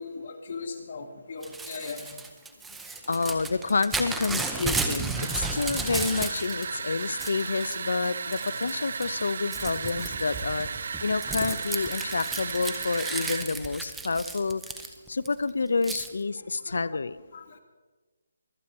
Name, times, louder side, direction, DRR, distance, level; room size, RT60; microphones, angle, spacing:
voice 1, 0.0-2.2 16.7-17.0 17.3-17.6, left 4 dB, 45° left, 3 dB, 1.4 m, -38 dB
Crumpling crinkling / Tearing, 1.4-6.7 7.0-7.8 8.3-8.7 9.0-15.3 15.8-16.1, right 3 dB, 5° right, 0.7 m, -34 dB
voice 2, 3.1-10.7 11.0-14.6 15.1-17.2, left 4 dB, 70° left, 17 dB, 0.7 m, -28 dB
sound 1, 5.1-13.5, right 5 dB, 50° right, 0.5 m, -35 dB
24.0 x 8.5 x 4.3 m, 1.3 s
hypercardioid pair, 170°, 0 cm